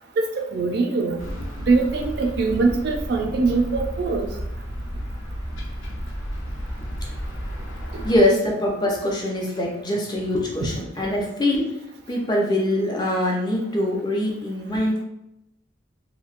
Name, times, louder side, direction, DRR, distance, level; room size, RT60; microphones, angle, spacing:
voice 1, 0.2-1.2 1.7-4.3 10.6-10.7, right 3 dB, 55° right, 3 dB, 0.4 m, -22 dB
sound 1, 1.2-8.2, equal, 75° left, 0.8 m, -32 dB
voice 2, 8.0-11.6 12.1-15.0, left 1 dB, 20° left, -1 dB, 0.5 m, -23 dB
3.0 x 2.7 x 2.4 m, 0.86 s
head